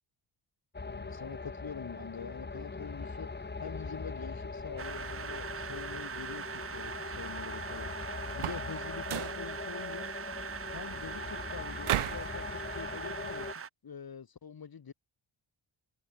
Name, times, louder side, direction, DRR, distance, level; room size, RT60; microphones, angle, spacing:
sound 1, 0.7-13.5, left 3 dB, 20° left, 1.7 m, -41 dB
voice 1, 0.8-3.3 3.6-10.1 10.7-14.9, left 6 dB, 45° left, 2.5 m, -45 dB
sound 2, 4.8-13.7, right 7 dB, 30° right, 0.6 m, -41 dB
sound 3, 8.3-8.7 9.0-9.4 11.8-12.3, right 13 dB, 85° right, 1.2 m, -33 dB
cardioid pair, 105°, 49 cm